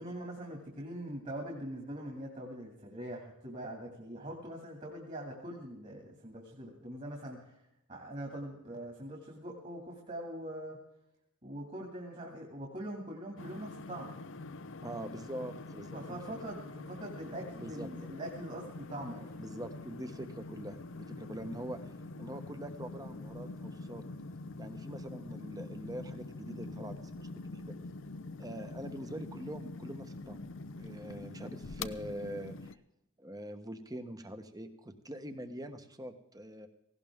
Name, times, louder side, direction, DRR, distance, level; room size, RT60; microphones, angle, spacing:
voice 1, 0.0-7.5 7.9-10.8 11.4-14.1 15.9-19.3, right 1 dB, 30° right, 0 dB, 2.5 m, -43 dB
sound 1, 13.4-32.8, left 3 dB, 55° left, 0.6 m, -45 dB
voice 2, 14.8-16.2 17.5-17.9 19.4-21.8 22.2-24.0 24.6-27.7 28.4-30.4 30.8-32.7 33.2-36.7, right 1 dB, 15° right, 8 dB, 1.1 m, -44 dB
17.5 x 17.0 x 3.7 m, 0.82 s
head